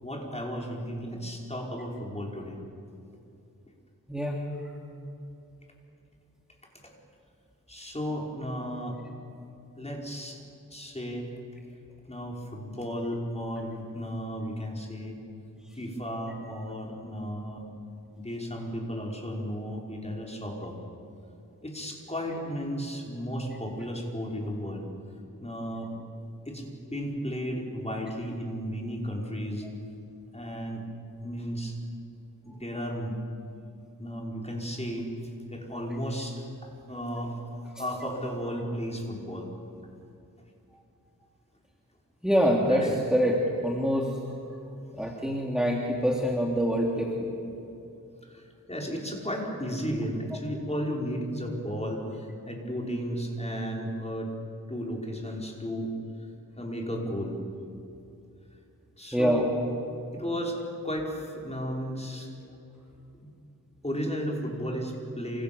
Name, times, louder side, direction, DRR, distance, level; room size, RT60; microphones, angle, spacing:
voice 1, 0.0-2.6 6.8-6.9 7.7-9.0 9.8-10.4 10.7-11.3 12.1-15.2 15.7-17.7 18.1-20.8 21.6-24.9 25.4-25.9 26.5-29.7 30.3-30.8 31.2-31.8 32.4-33.2 34.0-35.1 35.5-36.5 36.9-39.5 42.6-43.0 45.1-45.2 48.2-54.3 54.7-55.9 56.6-57.4 59.0-59.5 60.1-60.6 60.8-62.3 63.2-63.3 63.8-65.4, equal, 20° left, -1 dB, 5.5 m, -34 dB
voice 2, 42.2-44.1 45.0-47.5 59.1-59.5, equal, ahead, -2 dB, 3.2 m, -25 dB
28.0 x 26.5 x 7.2 m, 2.7 s
wide cardioid pair, 75°, 35 cm